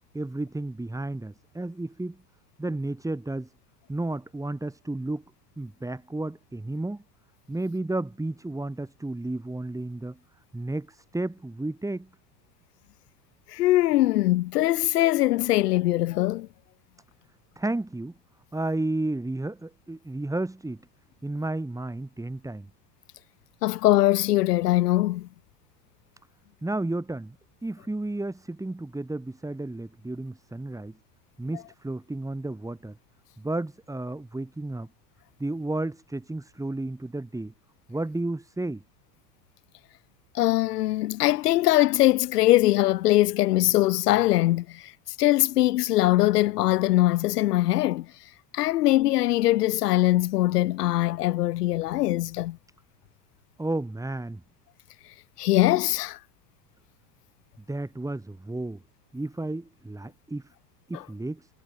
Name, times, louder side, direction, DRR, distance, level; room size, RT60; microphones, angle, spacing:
voice 1, 0.1-2.2 2.6-3.5 3.9-5.2 5.6-7.0 7.5-10.2 10.5-12.1 17.6-18.2 18.5-20.8 21.2-22.7 26.6-27.4 27.6-31.0 31.4-33.0 33.4-34.9 35.4-37.5 37.9-38.8 53.6-54.4 57.7-58.8 59.1-60.5 60.9-61.5, right 2 dB, 5° right, 7.1 m, -32 dB
voice 2, 13.5-16.5 23.6-25.3 40.3-44.9 45.2-48.1 48.5-52.6 55.4-56.2 60.9-61.0, left 16 dB, 85° left, 3.8 m, -22 dB
supercardioid pair, 115°, 46 cm